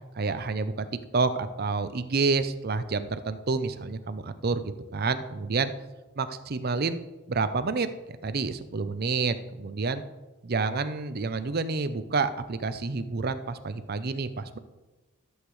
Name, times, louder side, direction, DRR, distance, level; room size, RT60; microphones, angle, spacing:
voice 1, 0.2-0.9 1.1-5.7 6.2-7.0 7.3-7.9 8.2-10.0 10.4-14.6, right 4 dB, 50° right, 11 dB, 0.6 m, -29 dB
13.5 x 8.2 x 3.2 m, 1.1 s
head